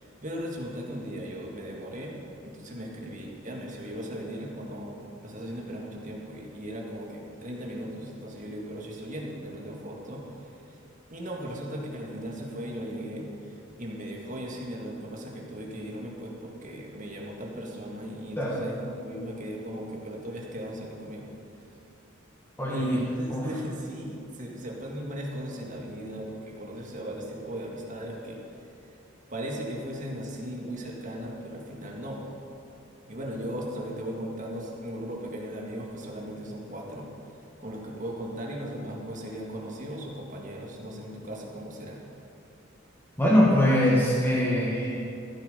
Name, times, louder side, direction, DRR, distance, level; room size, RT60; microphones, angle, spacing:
voice 1, 0.0-2.1 2.4-4.9 5.2-10.8 11.1-21.2 22.6-28.4 29.3-32.2 33.1-37.1 37.6-42.0, equal, 40° right, -1 dB, 1.9 m, -37 dB
voice 2, 22.6-23.0 23.3-23.5 43.2-45.0, left 1 dB, 10° left, -5 dB, 1.9 m, -22 dB
14.5 x 8.8 x 5.5 m, 2.7 s
head